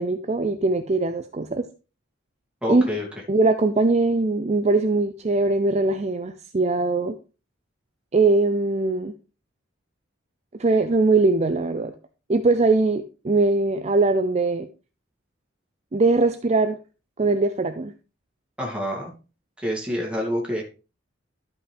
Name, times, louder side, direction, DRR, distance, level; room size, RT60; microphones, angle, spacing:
voice 1, 0.0-1.6 2.7-2.8 3.3-7.2 8.1-9.1 10.6-11.9 12.3-14.7 15.9-16.8 17.2-17.9, right 3 dB, 35° right, 7 dB, 0.5 m, -21 dB
voice 2, 2.6-3.1 18.6-19.1 19.6-20.6, equal, 5° right, -2 dB, 2.7 m, -27 dB
12.5 x 5.7 x 3.5 m, 0.33 s
head